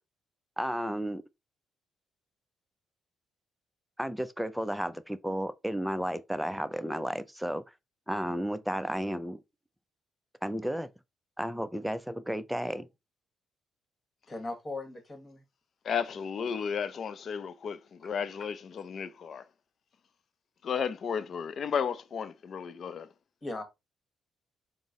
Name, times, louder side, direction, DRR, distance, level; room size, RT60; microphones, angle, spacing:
voice 1, 0.6-1.2 4.0-7.6 8.1-9.4 10.4-10.9 11.4-12.9, equal, 5° right, 0.4 m, -33 dB
voice 2, 14.3-15.4 18.0-18.1 23.4-23.6, left 2 dB, 30° left, 1.3 m, -38 dB
voice 3, 15.8-19.4 20.6-23.1, left 7 dB, 55° left, 0.4 m, -33 dB
3.9 x 2.0 x 3.6 m
cardioid pair, 90°, 0 cm